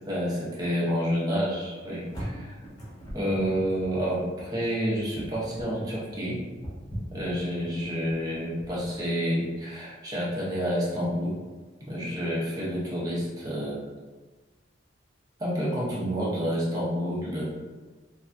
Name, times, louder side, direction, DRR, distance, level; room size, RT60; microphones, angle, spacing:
voice 1, 0.1-2.6 3.1-6.4 7.1-11.4 11.8-13.8 15.4-17.4, equal, 20° right, -7 dB, 0.7 m, -29 dB
sound 1, 1.7-8.9, equal, 20° left, 0.7 m, -40 dB
3.3 x 2.2 x 2.6 m, 1.3 s
head